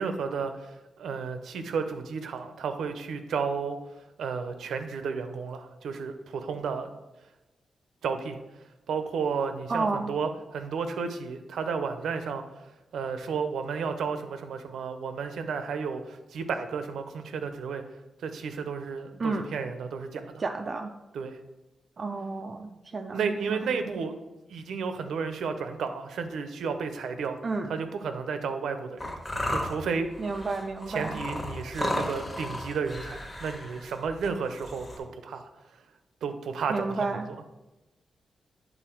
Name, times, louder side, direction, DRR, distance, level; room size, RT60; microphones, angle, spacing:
voice 1, 0.0-3.8 4.2-6.9 8.0-8.4 8.9-17.8 18.2-20.4 21.1-21.4 23.1-24.1 24.5-27.4 27.7-29.2 29.5-30.1 30.9-35.4 36.2-37.4, right 5 dB, 90° right, 8 dB, 0.7 m, -32 dB
voice 2, 9.7-10.1 19.2-19.5 20.4-20.9 22.0-23.2 23.5-23.6 27.4-27.7 30.2-31.2 36.7-37.3, right 3 dB, 35° right, 4 dB, 0.3 m, -31 dB
sound 1, 29.0-35.0, left 1 dB, 20° left, 1.1 m, -34 dB
9.0 x 4.1 x 4.5 m, 1.0 s
wide cardioid pair, 170°, 0 cm